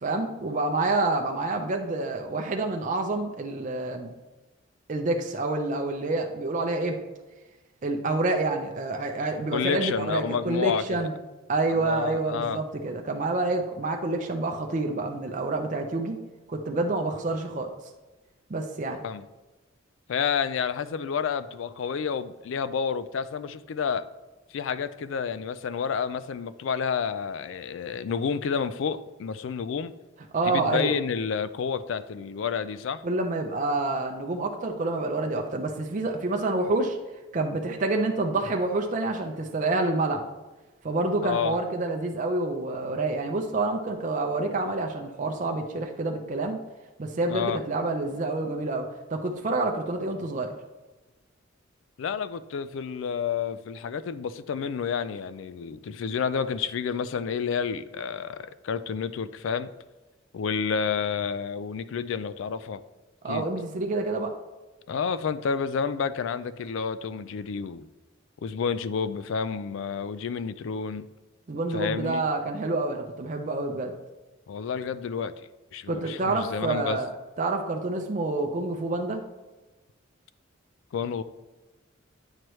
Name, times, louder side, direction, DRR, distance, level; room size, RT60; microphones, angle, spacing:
voice 1, 0.0-4.1 4.9-7.0 7.8-11.1 11.5-16.2 16.5-17.7 18.5-19.0 30.3-30.9 33.0-37.0 37.3-40.3 40.8-46.6 47.0-50.5 63.2-64.3 71.5-73.9 75.9-77.1 77.4-79.2, right 2 dB, 40° right, 3 dB, 0.5 m, -28 dB
voice 2, 9.5-11.1 11.7-12.6 19.0-19.3 20.1-24.0 24.5-29.9 30.5-33.0 41.2-41.6 47.3-47.6 52.0-59.7 60.3-62.8 63.3-63.5 64.9-67.9 68.4-71.1 71.7-72.2 74.5-75.3 75.7-77.0 80.9-81.2, left 6 dB, 65° left, 14 dB, 0.3 m, -30 dB
8.9 x 4.6 x 3.1 m, 1.1 s
head